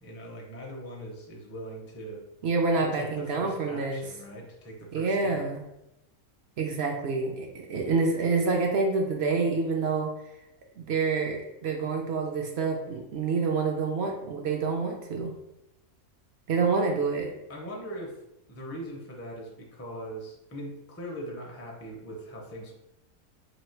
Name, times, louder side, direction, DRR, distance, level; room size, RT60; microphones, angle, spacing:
voice 1, 0.0-2.2 2.8-5.5 16.6-16.9 17.5-18.1 18.5-22.7, equal, 20° left, -1 dB, 0.3 m, -40 dB
voice 2, 2.4-4.0 4.9-5.6 6.6-10.1 10.8-15.3 16.5-17.3, right 4 dB, 65° right, 2 dB, 0.6 m, -27 dB
3.0 x 2.7 x 4.4 m, 0.89 s
omnidirectional pair, 1.5 m